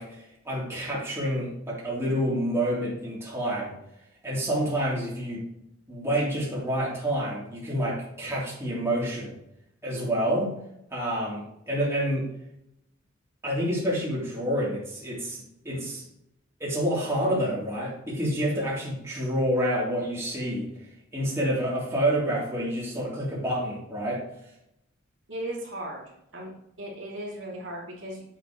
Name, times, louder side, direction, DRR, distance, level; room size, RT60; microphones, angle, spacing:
voice 1, 0.0-3.7 4.2-5.4 5.9-9.4 9.8-10.5 10.9-12.3 13.4-16.0 16.6-20.7 21.1-24.2, equal, 15° right, -6 dB, 3.4 m, -28 dB
voice 2, 25.3-28.2, right 1 dB, 70° right, -4 dB, 2.8 m, -37 dB
8.2 x 8.1 x 3.2 m, 0.79 s
head